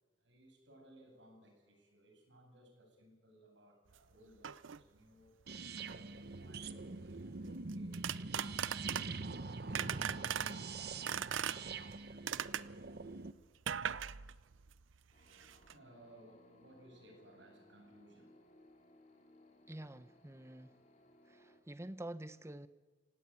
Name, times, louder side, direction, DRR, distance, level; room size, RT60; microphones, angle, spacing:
voice 1, 0.2-12.8 15.7-18.3, right 1 dB, 75° right, 3 dB, 7.8 m, -62 dB
sound 1, 3.9-4.0 4.4-4.8 5.8-6.1 7.7-9.3 9.7-10.6 11.1-11.9 12.3-12.8 13.6-15.0 15.2-15.7, right 9 dB, 90° right, 0.6 m, -39 dB
sound 2, 5.5-13.3, right 3 dB, 55° right, 1.0 m, -44 dB
sound 3, 15.1-21.6, left 1 dB, 40° left, 3.1 m, -65 dB
voice 2, 19.7-20.8 21.3-22.7, right 1 dB, 15° right, 13 dB, 0.8 m, -48 dB
25.0 x 18.0 x 8.9 m, 1.4 s
head